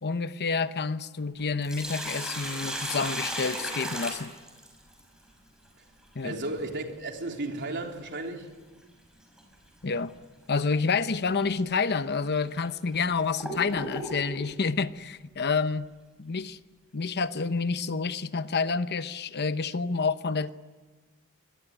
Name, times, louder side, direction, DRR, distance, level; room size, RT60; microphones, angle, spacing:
voice 1, 0.0-4.3 6.1-6.4 9.8-10.1 10.5-15.9 16.2-16.6 16.9-20.5, left 4 dB, 50° left, 0.9 m, -28 dB
Sink (filling or washing), 1.4-5.0 7.4-7.5 9.4-9.6 10.1-10.2 11.0-11.1 11.8-11.9 12.6-14.5, equal, 5° right, 6.3 m, -35 dB
voice 2, 6.2-8.5, right 2 dB, 55° right, 3.5 m, -34 dB
25.0 x 20.5 x 10.0 m
head